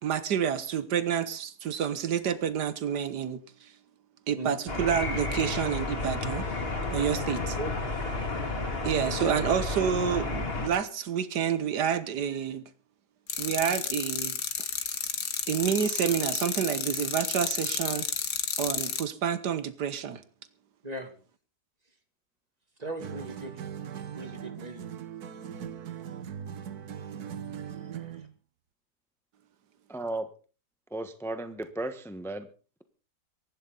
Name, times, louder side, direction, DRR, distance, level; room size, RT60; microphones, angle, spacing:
voice 1, 0.0-3.7 4.3-6.5 6.9-7.6 8.8-12.6 13.4-14.4 15.5-18.1 18.6-20.2, right 8 dB, 90° right, 1.7 m, -29 dB
voice 2, 4.3-4.6 7.3-7.7 20.8-21.1 22.8-23.6 24.1-24.9 27.6-28.3, right 2 dB, 25° right, 2.6 m, -39 dB
sound 1, 4.7-10.7, left 3 dB, 35° left, 2.7 m, -31 dB
sound 2, 13.3-19.0, left 7 dB, 80° left, 2.0 m, -31 dB
sound 3, 23.0-28.3, right 8 dB, 70° right, 1.5 m, -40 dB
voice 3, 29.9-30.3 30.9-32.5, right 2 dB, ahead, 1.1 m, -34 dB
22.5 x 12.0 x 4.0 m
omnidirectional pair, 1.7 m